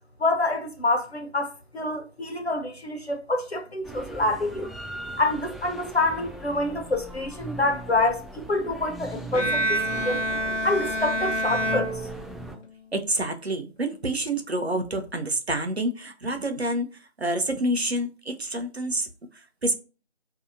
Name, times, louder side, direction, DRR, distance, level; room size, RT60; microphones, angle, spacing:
voice 1, 0.2-4.7 5.2-10.2 10.6-11.9, left 2 dB, 60° left, 0.7 m, -27 dB
sound 1, 3.8-12.6, right 2 dB, ahead, 0.3 m, -40 dB
Bowed string instrument, 9.3-12.7, right 1 dB, 85° left, 0.8 m, -27 dB
voice 2, 12.9-19.7, right 1 dB, 60° right, 0.6 m, -28 dB
4.0 x 2.7 x 2.5 m
figure-of-eight pair, 175°, 36 cm